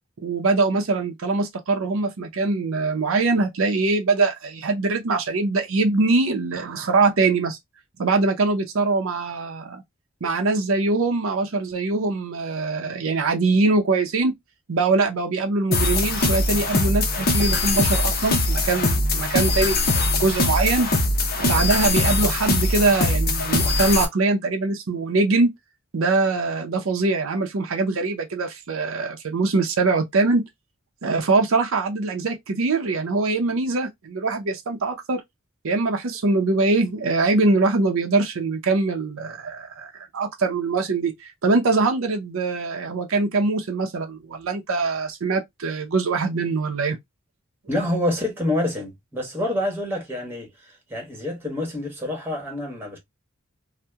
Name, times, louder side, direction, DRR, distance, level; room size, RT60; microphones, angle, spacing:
voice 1, 0.2-7.6 8.0-9.8 10.2-14.3 14.7-19.8 20.1-20.9 21.4-25.5 25.9-30.4 31.0-35.2 35.6-47.0, right 3 dB, 70° right, 0.6 m, -22 dB
sound 1, 15.7-24.1, left 2 dB, 45° left, 0.7 m, -22 dB
voice 2, 47.7-53.0, left 1 dB, 10° right, 1.2 m, -27 dB
2.8 x 2.1 x 3.4 m
head